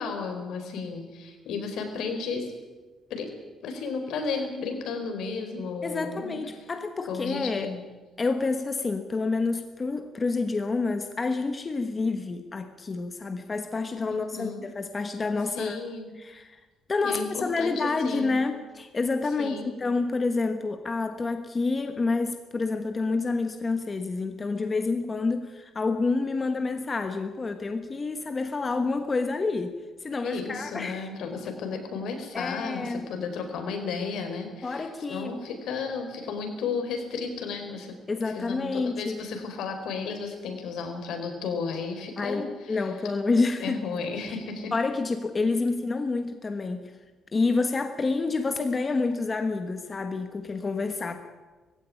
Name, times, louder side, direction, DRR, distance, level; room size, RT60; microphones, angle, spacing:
voice 1, 0.0-2.5 3.1-3.3 3.6-6.4 7.1-7.8 14.1-14.7 15.5-16.1 17.0-18.4 19.4-19.7 30.2-37.9 38.2-42.9 43.6-44.7, left 5 dB, 75° left, 5 dB, 4.6 m, -33 dB
voice 2, 5.8-7.7 8.2-15.8 16.2-16.6 16.9-29.8 30.0-31.1 32.3-33.1 34.6-35.3 38.1-39.1 42.2-43.8 44.7-46.9 47.3-51.2, left 3 dB, 25° left, 7 dB, 1.2 m, -28 dB
19.5 x 16.0 x 9.9 m, 1.3 s
cardioid pair, 160°, 0 cm